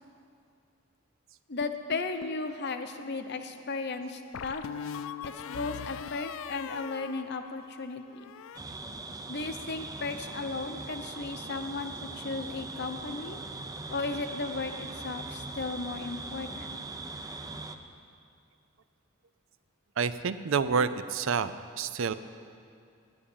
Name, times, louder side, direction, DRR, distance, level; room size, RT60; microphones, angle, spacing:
voice 1, 1.5-4.6 5.2-8.2 9.3-13.4 13.9-16.7, left 3 dB, 55° left, 7 dB, 0.9 m, -35 dB
sound 1, 1.6-2.5 4.3-7.8 8.1-8.6, left 8 dB, 70° left, 0.3 m, -41 dB
sound 2, 8.5-17.8, right 3 dB, 15° right, 0.5 m, -41 dB
voice 2, 20.0-22.1, right 5 dB, 65° right, 13 dB, 0.5 m, -28 dB
10.5 x 9.5 x 8.6 m, 2.4 s
head